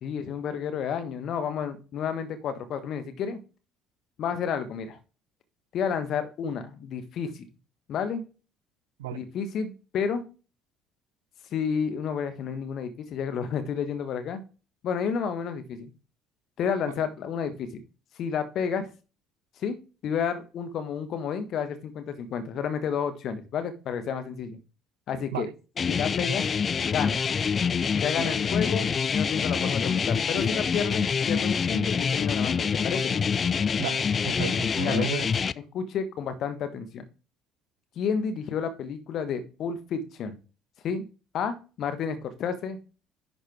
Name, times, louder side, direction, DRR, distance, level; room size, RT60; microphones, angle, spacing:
voice 1, 0.0-3.4 4.2-5.0 5.7-7.5 7.9-8.2 9.1-10.2 11.5-14.4 14.8-15.9 16.6-17.7 18.2-18.9 19.6-19.8 20.0-24.6 25.1-25.5 25.9-26.4 26.9-27.2 27.9-33.1 34.8-35.1 35.7-37.0 37.9-40.4 40.8-41.1 41.3-42.8, left 7 dB, 50° left, 1.5 m, -31 dB
sound 1, 25.8-35.5, left 6 dB, 35° left, 0.3 m, -26 dB
voice 2, 33.8-35.3, right 13 dB, 70° right, 0.4 m, -34 dB
11.0 x 4.1 x 4.8 m
figure-of-eight pair, 55°, 0 cm